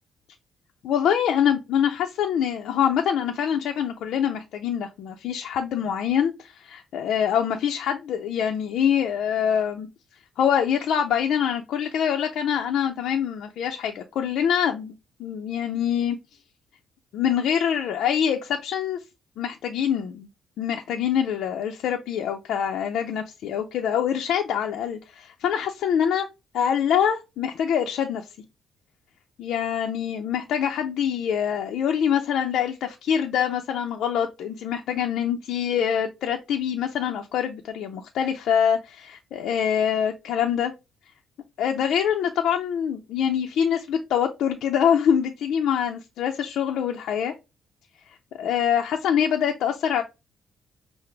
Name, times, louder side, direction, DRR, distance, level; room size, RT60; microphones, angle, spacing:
voice 1, 0.8-9.9 10.4-14.9 15.2-16.2 17.1-19.0 19.4-20.3 20.6-26.3 26.5-28.2 29.4-40.7 41.6-47.3 48.4-50.0, left 8 dB, 80° left, 0.5 m, -25 dB
5.7 x 2.1 x 3.3 m
cardioid pair, 90°, 0 cm